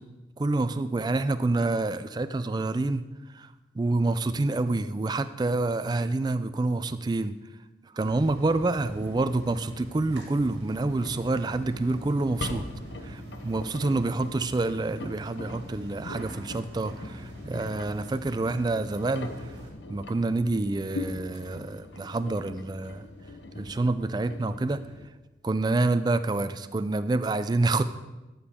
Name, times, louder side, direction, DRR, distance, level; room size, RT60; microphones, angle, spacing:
voice 1, 0.4-3.1 3.3-7.4 7.8-12.6 13.0-19.5 19.9-23.0 23.5-24.8 25.4-27.8, right 2 dB, 20° right, 12 dB, 0.3 m, -27 dB
sound 1, 8.0-19.7, equal, 60° right, 2.1 m, -43 dB
Engine, 10.9-25.0, left 2 dB, 70° left, 0.8 m, -42 dB
13.0 x 7.0 x 3.6 m, 1.1 s
head